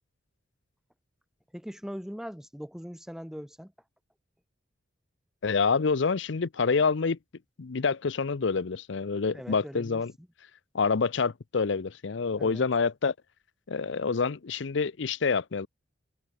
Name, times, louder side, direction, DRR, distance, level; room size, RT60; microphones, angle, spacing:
voice 1, 1.5-3.7 9.3-10.0 12.4-12.7, equal, ahead, 1.8 m, -40 dB
voice 2, 5.4-7.2 7.6-10.1 10.7-13.1 13.7-15.7, left 5 dB, 65° left, 0.6 m, -27 dB
head